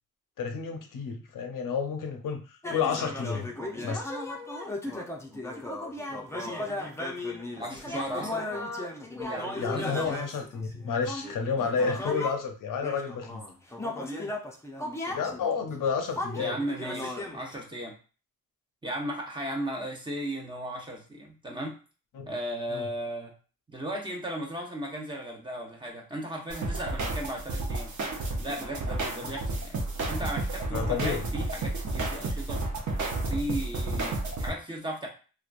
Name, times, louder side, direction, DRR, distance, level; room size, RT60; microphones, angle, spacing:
voice 1, 0.4-3.5 3.8-4.1 9.6-13.4 15.1-16.6 22.1-22.3 22.7-22.9 30.7-31.2, left 5 dB, 65° left, 4 dB, 0.6 m, -30 dB
sound 1, 2.6-12.4 12.8-17.5, left 2 dB, 10° left, 0.6 m, -36 dB
voice 2, 7.6-8.4 9.3-10.2 11.6-11.7 16.4-18.0 18.8-21.8 22.3-23.3 23.7-27.9 28.4-29.8 30.1-32.6 33.1-35.1, right 1 dB, 15° right, -1 dB, 0.9 m, -36 dB
sound 2, 26.5-34.5, right 2 dB, 55° right, 0.8 m, -31 dB
2.9 x 2.3 x 2.5 m, 0.35 s
cardioid pair, 60°, 35 cm